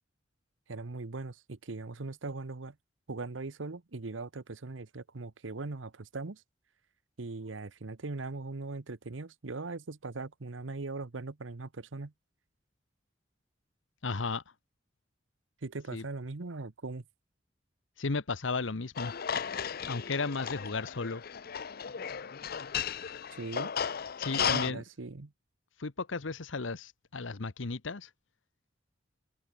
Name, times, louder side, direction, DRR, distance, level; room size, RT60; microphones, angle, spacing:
voice 1, 0.7-2.8 3.1-6.4 7.2-12.1 15.6-17.0 23.3-23.7 24.3-25.3, right 3 dB, 85° right, 1.0 m, -40 dB
voice 2, 14.0-14.4 15.9-16.0 18.0-19.1 19.9-21.2 24.2-24.8 25.8-28.1, left 4 dB, 80° left, 1.0 m, -34 dB
sound 1, 19.0-24.7, left 8 dB, 55° left, 0.7 m, -35 dB
open air
head